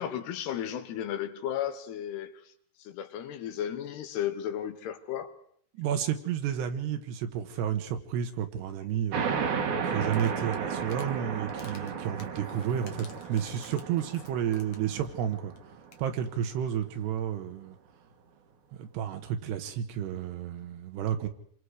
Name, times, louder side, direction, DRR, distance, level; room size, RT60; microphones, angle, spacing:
voice 1, 0.0-2.3 2.8-5.3, left 10 dB, 75° left, 3.3 m, -34 dB
voice 2, 5.7-9.3 9.8-15.5 16.0-17.8 18.8-21.3, right 9 dB, 80° right, 3.4 m, -31 dB
sound 1, 9.1-16.3, right 6 dB, 55° right, 2.5 m, -34 dB
sound 2, 10.1-11.1 11.5-14.9 15.2-15.3 15.6-15.7 15.8-16.1, left 6 dB, 55° left, 1.7 m, -52 dB
27.0 x 23.5 x 4.9 m
omnidirectional pair, 4.9 m